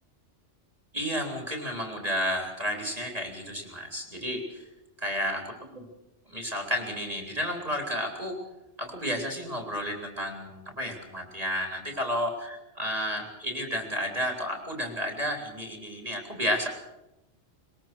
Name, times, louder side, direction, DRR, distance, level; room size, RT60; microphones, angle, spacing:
voice 1, 0.9-4.6 5.0-5.9 6.3-8.4 8.8-16.7, equal, 30° right, 2 dB, 3.6 m, -32 dB
21.5 x 21.0 x 6.1 m, 0.94 s
omnidirectional pair, 1.2 m